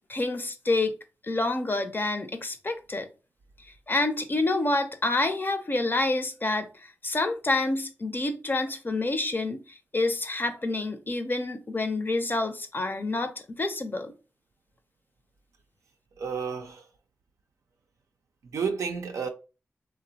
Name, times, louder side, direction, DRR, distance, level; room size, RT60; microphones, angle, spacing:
voice 1, 0.1-0.9 1.2-3.1 3.9-9.6 9.9-14.1, left 2 dB, 40° left, 0.5 m, -28 dB
voice 2, 16.2-16.8 18.5-19.3, right 6 dB, 85° right, 0.4 m, -31 dB
2.8 x 2.0 x 2.6 m
cardioid pair, 45°, 5 cm